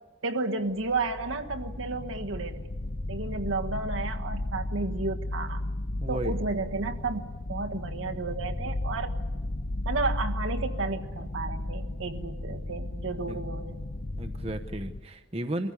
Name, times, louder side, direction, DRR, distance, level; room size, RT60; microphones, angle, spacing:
voice 1, 0.2-2.7 3.1-5.6 6.1-9.1 9.8-13.8, right 3 dB, 80° right, 4 dB, 1.4 m, -32 dB
sound 1, 0.7-15.0, left 1 dB, 45° left, 0.7 m, -34 dB
voice 2, 6.0-6.4 13.3-13.4 14.2-15.7, right 1 dB, 30° right, 5 dB, 0.8 m, -34 dB
23.5 x 15.0 x 9.6 m, 1.3 s
head